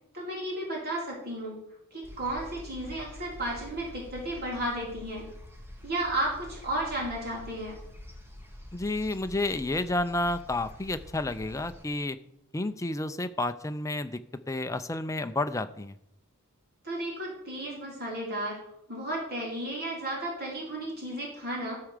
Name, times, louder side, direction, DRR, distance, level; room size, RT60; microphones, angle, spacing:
voice 1, 0.1-1.6 1.9-5.3 5.8-7.8 16.8-18.6 18.9-21.8, right 1 dB, 45° right, -2 dB, 3.5 m, -33 dB
sound 1, 2.0-11.8, left 1 dB, 10° right, 1.4 m, -47 dB
voice 2, 8.7-12.2 12.5-14.2 14.5-16.0, left 2 dB, 15° left, 9 dB, 0.5 m, -30 dB
13.5 x 4.8 x 6.6 m, 0.75 s
head